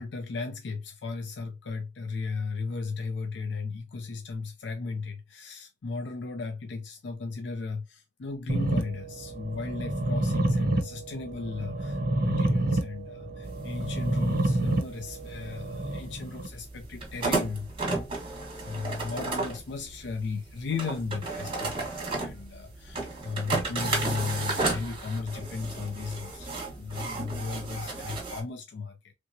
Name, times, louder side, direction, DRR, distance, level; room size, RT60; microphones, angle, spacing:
voice 1, 0.0-29.1, left 4 dB, 75° left, 0.5 m, -36 dB
sound 1, 8.5-16.5, right 1 dB, 55° right, 0.7 m, -29 dB
sound 2, 13.4-28.4, right 3 dB, 30° right, 1.3 m, -34 dB
3.3 x 2.9 x 2.6 m
head